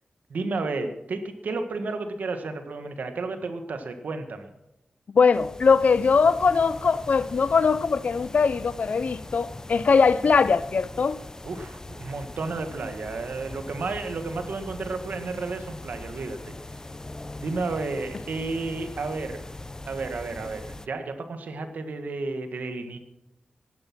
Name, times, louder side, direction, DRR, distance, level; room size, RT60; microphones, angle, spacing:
voice 1, 0.3-4.5 11.4-16.5 17.4-19.4 19.9-23.0, right 3 dB, 85° right, 1.7 m, -32 dB
voice 2, 5.1-11.2, left 5 dB, 65° left, 0.5 m, -21 dB
sound 1, 5.3-20.9, left 2 dB, 20° left, 0.7 m, -41 dB
15.5 x 11.0 x 6.1 m
wide cardioid pair, 105°, 3 cm